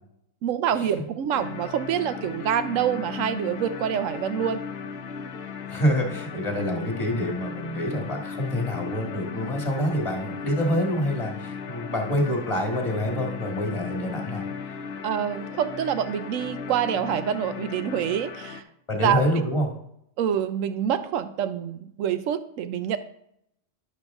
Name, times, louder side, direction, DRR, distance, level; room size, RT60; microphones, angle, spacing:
voice 1, 0.4-4.6 15.0-18.6 19.0-19.2 20.2-23.0, right 9 dB, 80° right, 12 dB, 1.0 m, -26 dB
sound 1, 1.3-18.6, left 6 dB, 55° left, 0.8 m, -36 dB
voice 2, 5.6-14.4 18.9-19.7, equal, 25° left, 1 dB, 1.6 m, -26 dB
10.5 x 6.6 x 3.5 m, 0.75 s
omnidirectional pair, 1.4 m